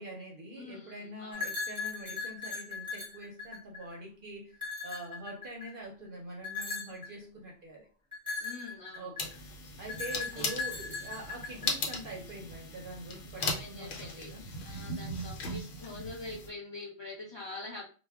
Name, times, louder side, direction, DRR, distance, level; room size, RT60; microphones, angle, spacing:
voice 1, 0.0-4.5 4.8-7.9 9.0-9.3 9.8-14.4, right 1 dB, 55° right, 0.7 m, -44 dB
voice 2, 0.5-1.5 8.4-9.1 10.2-10.5 13.4-17.9, left 3 dB, 30° left, 0.6 m, -45 dB
sound 1, 1.3-4.0 4.5-5.8 6.4-7.1 8.1-9.3 9.9-12.0, left 4 dB, 5° right, 0.8 m, -38 dB
sound 2, 9.2-16.5, left 2 dB, 85° left, 1.0 m, -38 dB
2.2 x 2.1 x 3.4 m
omnidirectional pair, 1.2 m